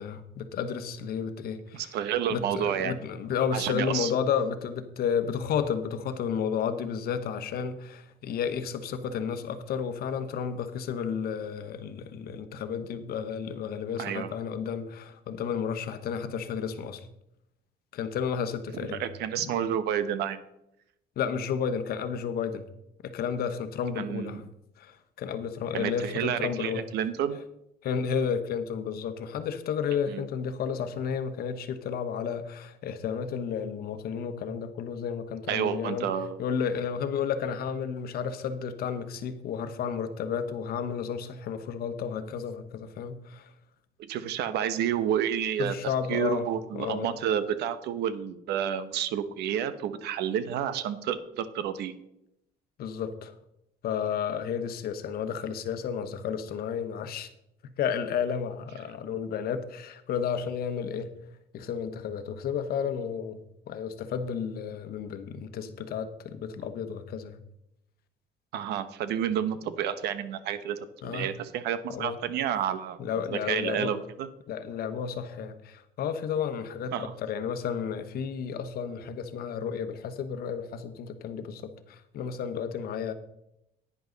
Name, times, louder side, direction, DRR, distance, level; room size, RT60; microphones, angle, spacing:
voice 1, 0.0-2.0 2.3-17.1 17.9-19.0 19.4-19.5 21.2-22.7 23.0-24.5 24.8-26.8 27.8-36.1 36.4-43.5 45.6-46.5 46.7-47.1 52.8-53.3 53.8-57.3 57.6-61.1 61.5-67.4 71.0-71.3 71.9-72.2 73.0-73.9 74.5-83.1, left 7 dB, 65° left, 10 dB, 1.1 m, -32 dB
voice 2, 1.7-3.0 3.5-4.1 14.0-14.4 18.8-20.4 24.0-24.4 25.7-27.4 30.1-30.3 35.5-36.4 44.0-51.9 68.5-70.8 71.0-73.0 73.3-74.3 76.9-77.1, right 9 dB, 80° right, 13 dB, 0.9 m, -30 dB
11.0 x 9.6 x 4.0 m, 0.82 s
cardioid pair, 110°, 17 cm